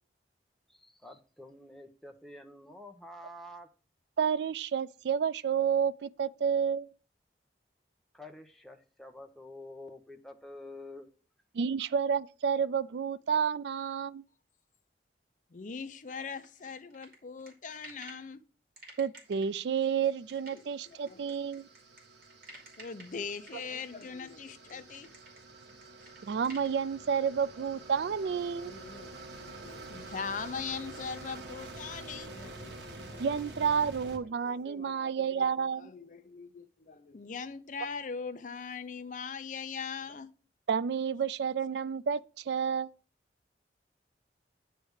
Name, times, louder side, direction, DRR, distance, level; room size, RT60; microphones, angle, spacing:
voice 1, 0.7-3.7 8.1-11.1, left 1 dB, ahead, 0.9 m, -48 dB
voice 2, 4.2-6.9 11.5-14.2 19.0-21.6 26.3-28.7 33.2-35.9 40.7-42.9, right 7 dB, 75° right, 0.3 m, -30 dB
voice 3, 15.5-18.4 20.5-21.2 22.8-25.1 27.6-27.7 28.3-33.3 34.4-40.3, left 5 dB, 45° left, 0.5 m, -41 dB
sound 1, 16.1-18.3 18.8-26.7, right 2 dB, 55° right, 2.6 m, -53 dB
sound 2, 19.5-34.2, right 2 dB, 90° right, 1.4 m, -48 dB
9.4 x 3.4 x 6.3 m
head